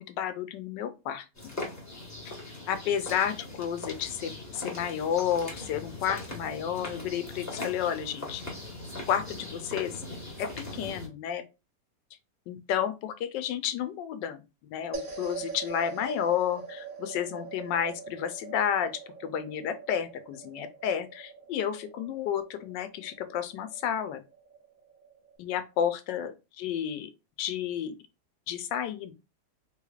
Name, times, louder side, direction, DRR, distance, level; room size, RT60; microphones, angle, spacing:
voice 1, 0.0-1.5 2.7-8.4 9.1-9.9 10.4-11.4 12.5-14.4 14.7-18.9 19.2-24.2 25.4-27.1 27.4-27.9 28.5-29.1, left 9 dB, 85° left, 1.3 m, -31 dB
sound 1, 1.4-11.1, left 2 dB, 10° left, 0.9 m, -40 dB
sound 2, 14.9-25.4, right 5 dB, 55° right, 1.0 m, -44 dB
3.6 x 3.1 x 2.3 m
omnidirectional pair, 1.9 m